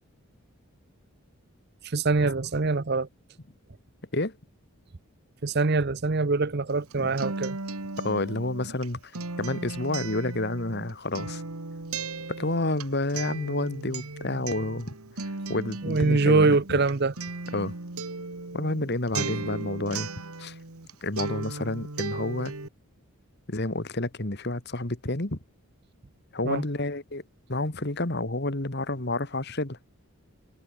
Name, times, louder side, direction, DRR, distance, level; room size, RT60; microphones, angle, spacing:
voice 1, 1.9-3.1 5.4-7.6 15.8-17.1 19.1-19.3 26.4-26.6, right 3 dB, 45° right, 0.7 m, -24 dB
Acoustic guitar, 6.7-20.9 21.2-22.7, right 3 dB, 80° right, 2.0 m, -36 dB
voice 2, 8.0-9.1 9.4-11.4 12.4-14.9 15.2-16.8 17.5-17.7 18.5-20.1 20.4-20.6 21.0-22.5 23.5-25.4 26.3-27.2 27.5-29.8, left 2 dB, 45° left, 1.8 m, -29 dB
head